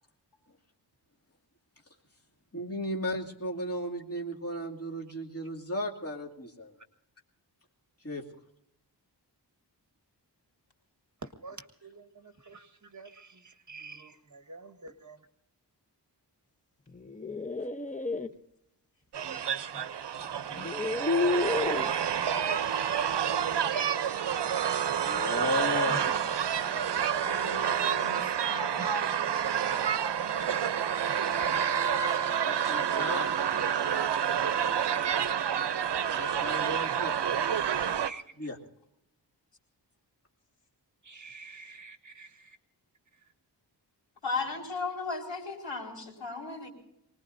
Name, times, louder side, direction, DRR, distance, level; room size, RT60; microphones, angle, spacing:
voice 1, 2.5-6.7 8.0-8.2 24.8-26.1 32.4-33.5 36.1-37.8 38.4-38.6, left 1 dB, 35° left, 0 dB, 2.5 m, -35 dB
voice 2, 11.2-15.3 23.6-23.9 25.9-26.1 28.2-29.2 31.1-31.7 34.6-36.1 38.0-38.2 41.0-42.6, right 3 dB, 45° right, 7 dB, 1.6 m, -47 dB
sound 1, 17.0-18.3 19.8-19.9 20.5-21.9, left 3 dB, 20° left, 0.8 m, -30 dB
sound 2, 19.1-38.1, right 8 dB, 70° right, 0.7 m, -29 dB
voice 3, 25.7-26.4 27.2-28.9 31.9-32.5 44.2-46.7, left 4 dB, 85° left, 1 dB, 4.3 m, -37 dB
24.0 x 20.0 x 2.6 m, 0.78 s
wide cardioid pair, 95°, 42 cm